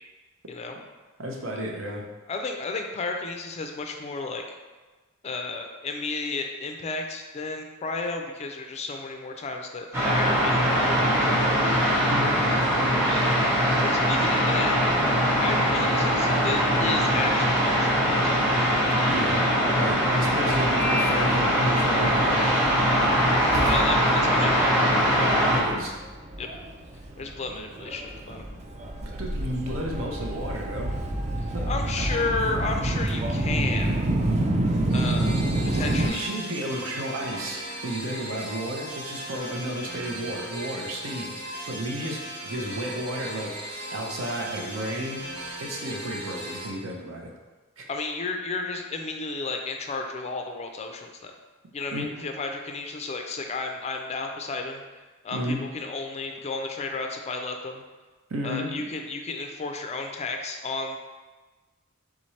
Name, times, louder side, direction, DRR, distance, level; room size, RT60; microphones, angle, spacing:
voice 1, 1.2-2.0 12.0-12.4 19.1-19.4 19.8-22.6 25.5-25.9 29.0-31.0 31.5-31.7 35.7-45.3 45.6-47.3 47.8-47.9 51.9-52.3 55.3-55.6 58.3-58.7, right 1 dB, 65° right, 0 dB, 0.7 m, -33 dB
voice 2, 2.3-4.4 5.2-11.4 13.1-14.7 15.3-18.4 23.6-24.8 26.4-26.5 27.2-28.5 31.7-34.1 34.9-36.3 47.9-51.3 51.7-54.8 55.2-57.8 58.4-61.0, left 3 dB, 30° left, 4 dB, 0.4 m, -33 dB
sound 1, 9.9-25.6, equal, 10° right, 1.0 m, -22 dB
Subway metro underground, 20.5-36.1, right 1 dB, 30° right, 0.4 m, -29 dB
sound 2, 34.9-46.7, right 1 dB, 90° right, 1.2 m, -37 dB
4.2 x 3.6 x 3.2 m, 1.3 s
head